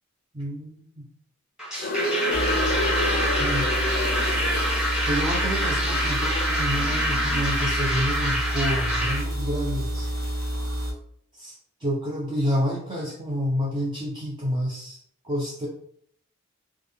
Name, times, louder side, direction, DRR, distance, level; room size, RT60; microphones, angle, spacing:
voice 1, 0.3-0.9 1.7-2.0 3.4-3.7 5.1-10.1 11.3-15.0 15.2-15.7, equal, 20° right, -4 dB, 0.5 m, -29 dB
sound 1, 1.6-9.2, equal, 5° right, 0.9 m, -26 dB
sound 2, 1.8-7.7, left 1 dB, 45° left, 0.5 m, -30 dB
sound 3, 2.3-10.9, equal, 70° right, 1.0 m, -29 dB
3.5 x 2.1 x 3.3 m, 0.66 s
head